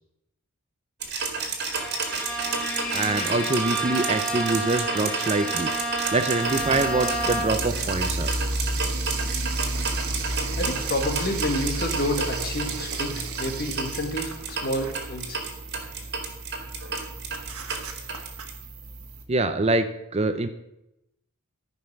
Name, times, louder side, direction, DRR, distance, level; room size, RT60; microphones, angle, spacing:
sound 1, 1.0-18.5, right 4 dB, 50° right, 2.0 m, -31 dB
Bowed string instrument, 1.7-7.8, right 1 dB, 5° left, 1.1 m, -30 dB
voice 1, 2.9-8.3 19.3-20.5, right 2 dB, 30° right, 10 dB, 0.5 m, -25 dB
sound 2, 6.4-19.2, right 2 dB, 75° right, 1.5 m, -32 dB
voice 2, 10.6-15.4, left 1 dB, 45° left, 5 dB, 1.6 m, -29 dB
14.0 x 5.4 x 6.0 m, 0.86 s
head